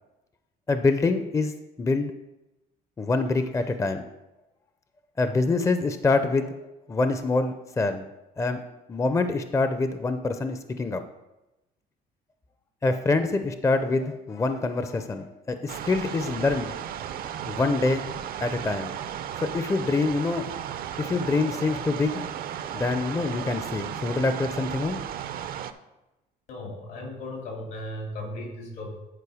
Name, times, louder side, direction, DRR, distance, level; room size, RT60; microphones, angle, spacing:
voice 1, 0.7-1.5 1.8-2.1 3.0-4.1 5.2-6.5 6.9-8.1 8.4-8.6 8.9-11.0 12.8-16.7 17.5-18.0 18.4-18.9 19.5-20.5 21.0-22.2 22.7-25.0, left 3 dB, 15° left, 9 dB, 0.5 m, -25 dB
sound 1, 15.7-25.7, right 9 dB, 60° right, 0.5 m, -35 dB
voice 2, 26.5-28.9, left 1 dB, 80° left, 0 dB, 2.7 m, -36 dB
9.8 x 4.4 x 4.9 m, 0.98 s
cardioid pair, 110°, 17 cm